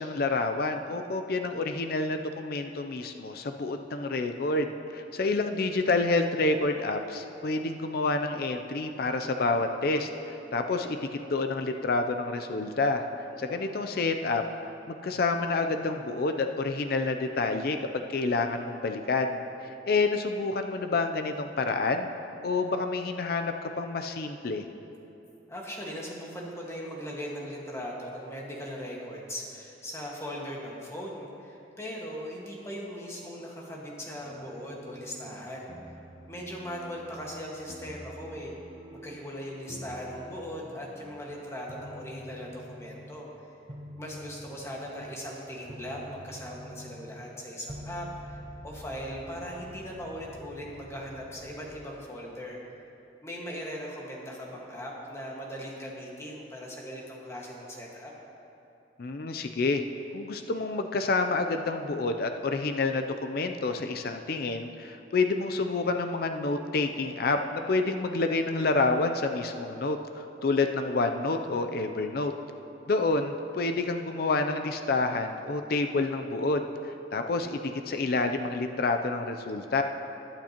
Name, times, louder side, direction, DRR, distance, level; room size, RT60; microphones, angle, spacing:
voice 1, 0.0-11.0 11.3-13.0 13.4-14.4 14.9-17.8 18.1-19.4 19.9-22.1 22.4-24.7 59.0-59.8 60.1-72.3 72.9-79.8, left 3 dB, 55° left, 6 dB, 0.5 m, -28 dB
voice 2, 13.4-14.0 25.5-36.0 36.3-38.5 38.9-43.3 44.0-48.4 48.6-52.6 53.2-58.1, equal, 15° left, -3 dB, 1.6 m, -39 dB
sound 1, 34.2-35.4 35.7-37.4 37.7-39.3 39.7-41.3 41.7-43.3 43.7-51.9, equal, 30° right, 0.7 m, -47 dB
19.5 x 8.9 x 2.9 m, 2.9 s
head